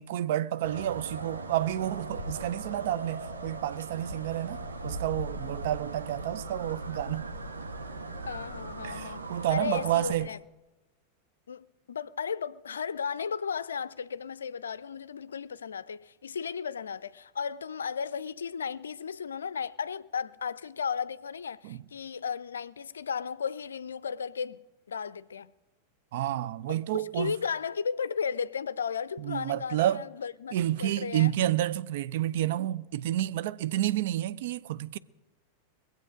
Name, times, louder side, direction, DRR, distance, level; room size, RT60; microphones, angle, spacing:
voice 1, 0.0-7.3 8.8-10.3 21.6-21.8 26.1-27.3 29.2-30.0 30.5-35.0, right 13 dB, 55° right, 0.4 m, -30 dB
sound 1, 0.6-10.2, right 2 dB, 75° right, 1.2 m, -39 dB
voice 2, 8.2-10.4 11.5-24.6 24.9-25.5 26.7-31.3, left 6 dB, 70° left, 0.4 m, -35 dB
22.5 x 7.9 x 5.1 m
figure-of-eight pair, 90°, 0 cm